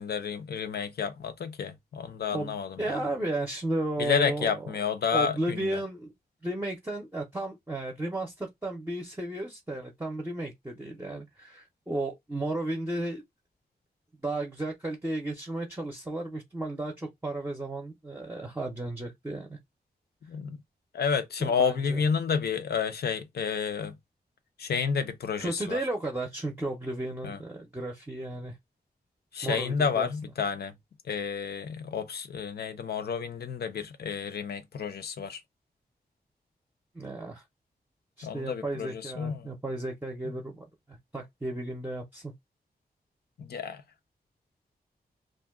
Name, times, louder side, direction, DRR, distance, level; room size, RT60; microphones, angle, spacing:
voice 1, 0.0-3.0 4.0-5.8 20.2-20.6 20.9-24.0 24.6-25.8 27.2-27.4 29.3-30.7 31.1-35.4 38.2-39.5 43.4-43.8, left 6 dB, 85° left, 0.5 m, -30 dB
voice 2, 2.3-4.7 5.1-6.1 6.4-13.2 14.2-19.6 21.4-22.0 25.4-28.6 29.4-30.1 36.9-37.4 38.2-42.3, right 2 dB, 10° right, 0.6 m, -34 dB
2.5 x 2.2 x 3.5 m
wide cardioid pair, 100°, 16 cm